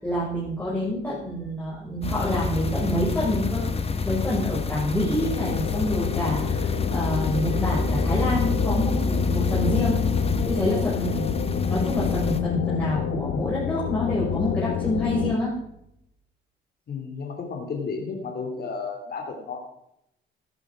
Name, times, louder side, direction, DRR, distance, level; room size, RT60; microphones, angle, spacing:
voice 1, 0.0-10.1 10.5-15.6, equal, 10° left, -8 dB, 5.9 m, -27 dB
sound 1, 2.0-12.4, left 3 dB, 30° left, 1.4 m, -28 dB
sound 2, 5.2-15.4, left 11 dB, 70° left, 0.9 m, -29 dB
voice 2, 16.9-19.6, left 4 dB, 50° left, 2 dB, 2.4 m, -32 dB
15.5 x 11.0 x 4.9 m, 0.79 s
cardioid pair, 90°, 20 cm